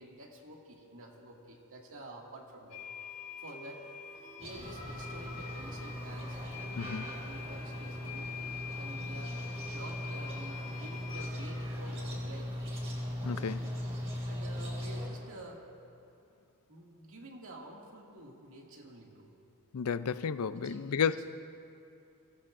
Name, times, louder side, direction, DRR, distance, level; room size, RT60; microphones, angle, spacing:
voice 1, 0.0-3.9 4.4-8.3 8.8-12.7 14.3-15.7 16.7-19.3 20.4-21.2, right 1 dB, 65° right, -1 dB, 2.3 m, -50 dB
sound 1, 2.7-11.3, left 7 dB, 35° left, 3.2 m, -46 dB
sound 2, 4.4-15.1, equal, 30° right, 4.3 m, -39 dB
voice 2, 13.2-13.7 19.7-21.2, left 6 dB, 70° left, 14 dB, 0.5 m, -32 dB
25.5 x 19.0 x 2.6 m, 2.7 s
head